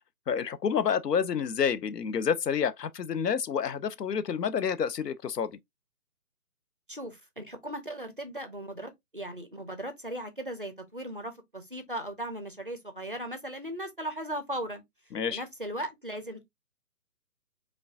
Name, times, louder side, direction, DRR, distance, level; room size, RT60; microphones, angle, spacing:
voice 1, 0.3-5.5 15.1-15.4, left 7 dB, 80° left, 0.6 m, -29 dB
voice 2, 6.9-14.8 15.3-16.4, right 1 dB, 35° right, 0.4 m, -37 dB
4.9 x 2.3 x 2.4 m
figure-of-eight pair, 150°, 47 cm